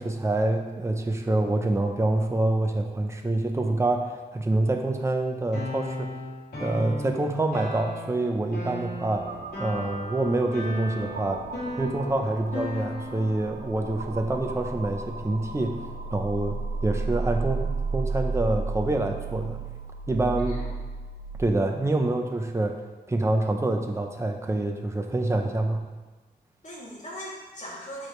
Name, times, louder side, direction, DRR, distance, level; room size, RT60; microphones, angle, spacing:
voice 1, 0.0-6.1 6.6-9.3 9.6-11.4 11.8-15.8 16.1-19.6 20.1-20.5 21.4-25.8, right 2 dB, 15° right, 3 dB, 0.7 m, -26 dB
sound 1, 5.5-13.4, left 2 dB, 75° left, 2.8 m, -36 dB
sound 2, 9.1-21.4, right 4 dB, 75° right, 0.7 m, -34 dB
voice 2, 20.4-20.7 22.1-22.2 26.6-28.1, equal, 50° left, -6 dB, 2.6 m, -40 dB
12.0 x 5.1 x 3.2 m, 1.3 s
wide cardioid pair, 160°, 17 cm